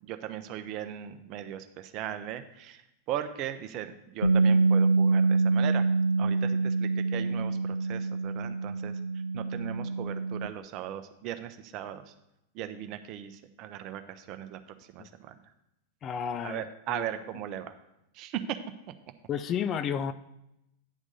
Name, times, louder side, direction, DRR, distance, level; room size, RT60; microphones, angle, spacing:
voice 1, 0.0-2.8 3.1-5.9 6.2-8.9 9.3-12.1 12.5-14.6 14.9-15.4 16.4-17.7 18.1-18.6, right 10 dB, 40° right, 9 dB, 0.6 m, -38 dB
Bass guitar, 4.2-10.5, right 3 dB, 85° right, 0.4 m, -26 dB
voice 2, 16.0-17.0 19.3-20.1, left 8 dB, 30° left, 13 dB, 0.3 m, -32 dB
9.3 x 3.6 x 6.7 m, 0.85 s
figure-of-eight pair, 90°, 0 cm